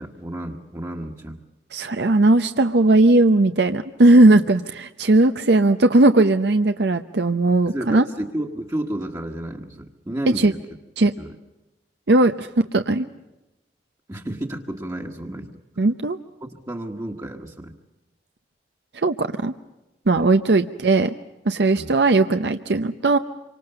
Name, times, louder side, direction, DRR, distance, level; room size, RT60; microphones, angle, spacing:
voice 1, 0.0-1.4 7.6-10.6 11.2-11.4 14.1-15.6 16.4-17.8 20.1-20.2 21.8-21.9, right 1 dB, 20° right, 0 dB, 1.4 m, -31 dB
voice 2, 1.7-8.0 10.4-10.5 11.0-11.1 12.1-13.1 15.8-16.2 19.0-19.5 20.1-21.1 21.5-23.2, right 2 dB, 75° right, 8 dB, 0.8 m, -17 dB
27.0 x 25.0 x 6.8 m, 1.0 s
head